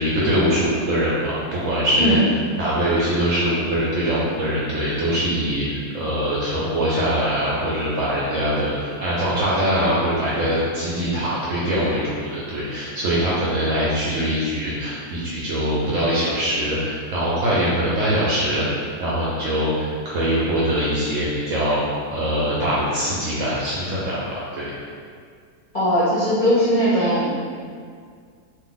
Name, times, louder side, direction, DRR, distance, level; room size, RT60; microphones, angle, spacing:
voice 1, 0.0-2.2 2.6-21.8 22.1-24.2 24.5-24.7, equal, 65° right, -7 dB, 0.8 m, -22 dB
voice 2, 25.7-27.4, equal, 45° left, -12 dB, 0.7 m, -19 dB
2.5 x 2.4 x 3.8 m, 2.1 s
omnidirectional pair, 1.7 m